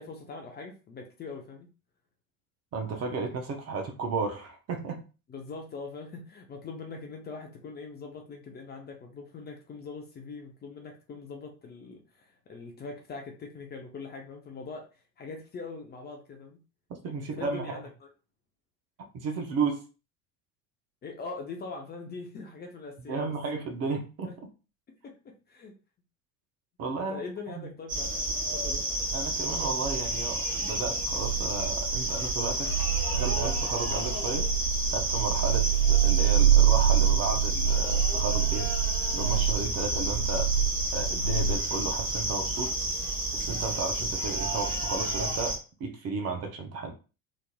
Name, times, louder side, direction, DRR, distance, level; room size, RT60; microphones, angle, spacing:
voice 1, 0.0-1.7 5.3-14.9 15.2-16.6 17.2-18.1 21.0-23.3 25.0-25.1 25.5-25.7 27.0-28.8, left 4 dB, 25° left, 2 dB, 0.6 m, -42 dB
voice 2, 2.7-5.0 17.0-17.9 19.1-19.8 23.1-24.4 26.8-27.2 27.5-27.7 29.1-32.7 33.1-34.5 34.9-38.7 39.1-40.5 40.9-42.7 43.3-46.9, right 4 dB, 35° right, 4 dB, 0.7 m, -33 dB
sound 1, 27.9-45.6, right 1 dB, 20° right, 1.1 m, -31 dB
sound 2, 31.1-41.6, right 9 dB, 85° right, 0.5 m, -26 dB
2.9 x 2.5 x 2.2 m, 0.33 s
figure-of-eight pair, 75°, 43 cm